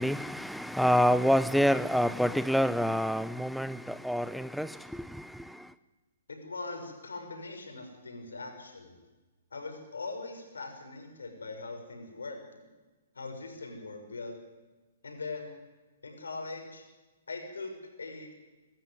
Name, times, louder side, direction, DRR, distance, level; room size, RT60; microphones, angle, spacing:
voice 1, 0.0-5.3, equal, ahead, 14 dB, 0.6 m, -27 dB
voice 2, 6.3-9.0 9.5-12.7 13.1-14.4 15.0-15.5 16.0-16.8 17.3-17.7 18.0-18.3, left 3 dB, 85° left, 4 dB, 5.9 m, -41 dB
24.0 x 13.0 x 9.7 m, 1.2 s
hypercardioid pair, 125°, 0 cm